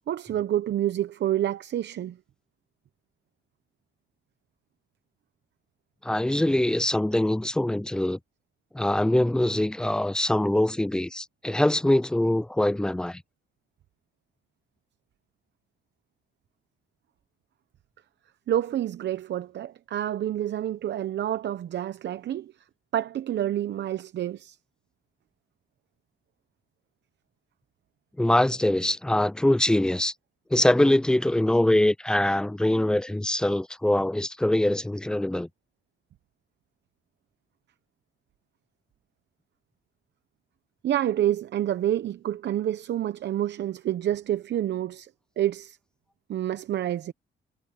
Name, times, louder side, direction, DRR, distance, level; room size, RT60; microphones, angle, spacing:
voice 1, 0.1-2.2 18.5-22.5 22.9-24.6 40.8-45.1 45.4-45.8 46.3-47.1, right 11 dB, 60° right, 0.8 m, -28 dB
voice 2, 6.0-8.2 8.7-13.2 28.2-30.1 30.5-35.5, left 1 dB, 5° left, 0.4 m, -23 dB
cardioid pair, 90°, 20 cm